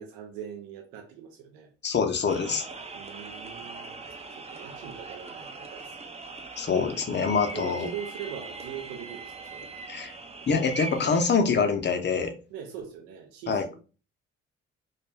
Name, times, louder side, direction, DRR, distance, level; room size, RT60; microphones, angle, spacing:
voice 1, 0.0-1.7 2.9-4.0 4.4-6.2 7.5-9.7 12.5-13.7, right 8 dB, 75° right, 0.6 m, -41 dB
voice 2, 1.8-2.7 6.6-7.9 9.9-10.1 10.5-12.3 13.5-13.6, left 5 dB, 30° left, 0.6 m, -25 dB
sound 1, 2.3-11.2, right 3 dB, 20° right, 0.5 m, -41 dB
2.2 x 2.1 x 3.2 m
hypercardioid pair, 45°, 36 cm